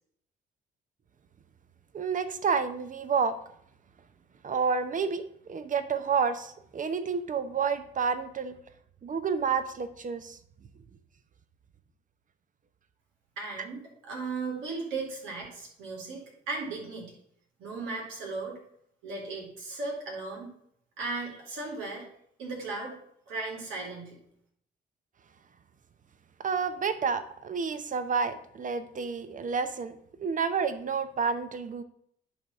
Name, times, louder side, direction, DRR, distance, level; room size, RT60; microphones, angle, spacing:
voice 1, 1.9-3.4 4.4-5.2 5.5-8.5 9.0-10.4 26.4-30.0 30.2-31.8, right 5 dB, 40° right, 11 dB, 0.8 m, -29 dB
voice 2, 13.4-17.1 17.6-18.6 19.0-20.5 21.0-22.0 22.4-22.9 23.3-24.2, right 3 dB, 85° right, -1 dB, 2.4 m, -36 dB
10.0 x 3.4 x 5.5 m, 0.69 s
supercardioid pair, 65°, 20 cm